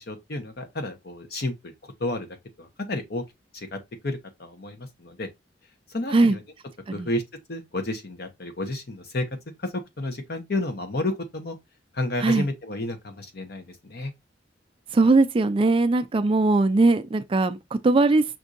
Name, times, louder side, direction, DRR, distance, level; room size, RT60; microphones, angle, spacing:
voice 1, 0.0-3.2 3.5-5.3 5.9-6.4 6.9-7.2 7.5-9.3 9.6-11.6 11.9-14.1, left 2 dB, 60° left, 1.0 m, -31 dB
voice 2, 14.9-18.3, right 3 dB, 30° right, 0.4 m, -20 dB
6.0 x 2.6 x 2.6 m
head